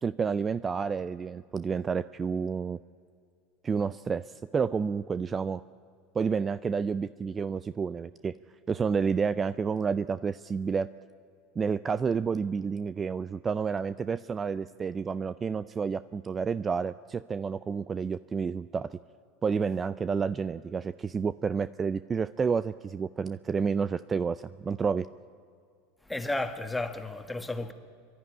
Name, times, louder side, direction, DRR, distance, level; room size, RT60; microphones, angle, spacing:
voice 1, 0.0-2.8 3.6-5.6 6.1-8.3 8.7-10.9 11.6-19.0 19.4-25.1, right 5 dB, 25° right, 0.4 m, -30 dB
voice 2, 26.0-27.7, left 2 dB, 10° left, 1.7 m, -33 dB
28.0 x 11.5 x 9.8 m
hypercardioid pair, 95°, 0 cm